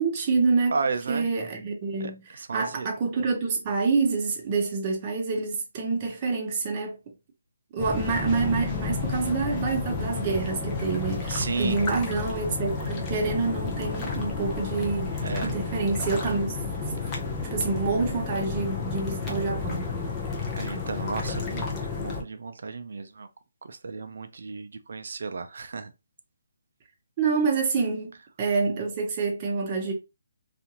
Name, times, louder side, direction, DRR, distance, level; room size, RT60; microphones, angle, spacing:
voice 1, 0.0-0.7 1.1-7.0 7.7-16.6 17.5-19.9 27.2-28.1 28.4-29.9, right 4 dB, 25° right, 0.8 m, -27 dB
voice 2, 0.7-1.3 2.0-2.1 2.4-2.9 11.3-11.8 15.2-15.5 20.5-21.7 22.0-23.3 23.6-25.9, right 4 dB, 65° right, 0.4 m, -33 dB
sound 1, 7.8-22.2, left 4 dB, 20° left, 0.6 m, -31 dB
2.5 x 2.5 x 2.9 m
hypercardioid pair, 165°, 0 cm